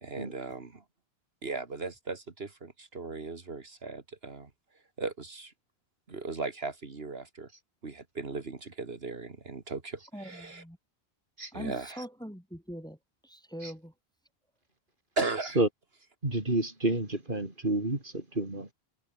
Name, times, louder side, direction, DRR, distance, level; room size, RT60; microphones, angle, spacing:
voice 1, 0.0-0.8 1.4-4.5 5.0-5.5 6.1-7.5 7.8-10.6 11.5-12.1 15.2-15.6, right 3 dB, 70° right, 2.3 m, -37 dB
voice 2, 10.1-10.8 11.5-13.0 13.2-13.9, equal, 5° left, 2.7 m, -42 dB
voice 3, 16.2-18.7, right 2 dB, 55° right, 4.2 m, -29 dB
omnidirectional pair, 1.1 m